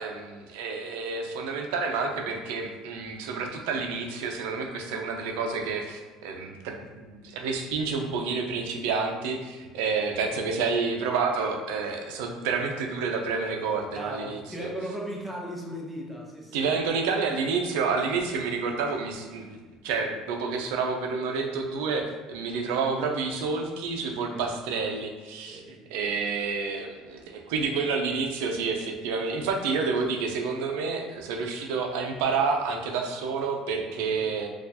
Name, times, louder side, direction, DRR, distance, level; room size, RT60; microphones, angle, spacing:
voice 1, 0.0-14.7 16.5-34.5, right 4 dB, 90° right, 3 dB, 0.5 m, -29 dB
voice 2, 13.9-16.7 24.3-24.5 25.5-26.1 33.9-34.1, equal, 5° right, -3 dB, 0.8 m, -37 dB
4.2 x 2.4 x 2.8 m, 1.3 s
cardioid pair, 115°, 0 cm